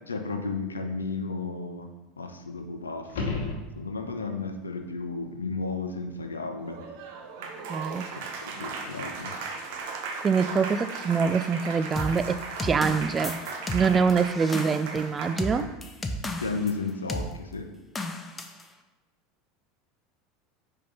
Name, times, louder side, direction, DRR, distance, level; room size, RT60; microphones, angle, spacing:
voice 1, 0.1-1.9 2.2-3.4 3.8-6.8 8.2-9.3 15.6-15.7 16.4-17.7, left 4 dB, 90° left, 6 dB, 0.6 m, -33 dB
sound 1, 3.0-4.3 9.1-9.2, left 3 dB, 70° left, 1.0 m, -33 dB
Applause, 6.6-15.8, right 4 dB, 65° right, 0.8 m, -37 dB
voice 2, 7.7-8.1 10.2-13.4 13.7-15.7, right 5 dB, 25° right, 13 dB, 0.3 m, -25 dB
sound 2, 12.0-16.7 17.1-17.3 18.0-18.6, left 1 dB, 20° left, 0.7 m, -33 dB
5.1 x 4.4 x 5.2 m, 1.1 s
hypercardioid pair, 80°, 0 cm